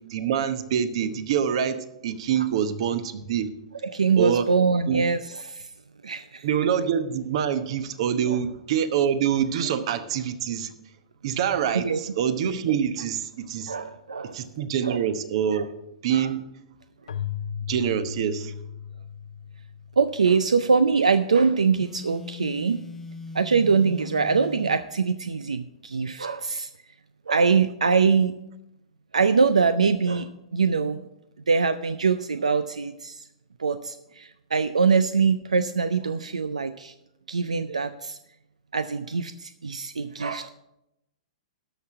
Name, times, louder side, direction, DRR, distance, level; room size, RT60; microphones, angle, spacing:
voice 1, 0.0-3.5 4.2-4.5 4.9-5.0 6.4-10.7 11.2-13.7 14.2-15.7 16.0-16.4 17.7-18.5, right 8 dB, 60° right, 11 dB, 0.9 m, -25 dB
voice 2, 3.8-5.7 6.0-6.5 8.3-8.4 11.8-12.0 13.7-14.4 14.8-15.0 15.5-15.6 16.1-16.3 20.0-22.8 23.3-26.7 27.3-28.3 29.1-31.1 31.5-33.3 33.6-36.9 37.3-38.2 38.7-40.5, right 5 dB, 90° right, 13 dB, 0.4 m, -23 dB
Keyboard (musical), 17.1-20.6, left 9 dB, 80° left, 0.5 m, -36 dB
Telephone, 21.8-24.9, left 3 dB, 10° left, 0.7 m, -40 dB
12.5 x 6.0 x 5.6 m, 0.87 s
hypercardioid pair, 115°, 4 cm